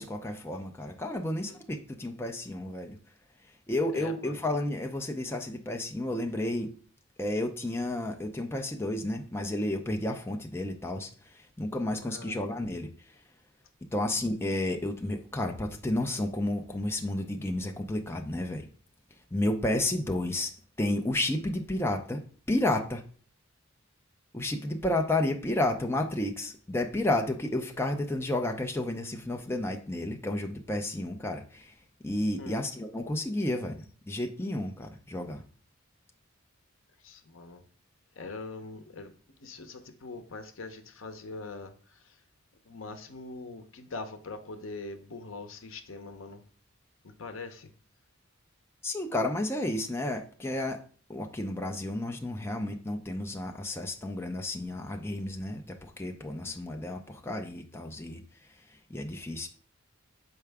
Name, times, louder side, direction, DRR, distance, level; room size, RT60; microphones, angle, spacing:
voice 1, 0.0-3.0 3.7-6.7 7.2-12.9 13.9-18.7 19.3-20.5 20.8-22.2 22.5-23.0 24.3-31.7 32.0-35.4 48.8-50.8 51.1-58.2 58.9-59.5, left 1 dB, 10° left, 3 dB, 0.5 m, -31 dB
voice 2, 1.5-1.8 3.9-4.4 12.0-12.4 32.4-32.6 37.0-37.6 38.2-39.1 39.4-42.2 42.7-46.4 47.0-47.7 56.4-56.5, left 3 dB, 70° left, 8 dB, 0.8 m, -43 dB
6.7 x 4.7 x 3.4 m, 0.43 s
head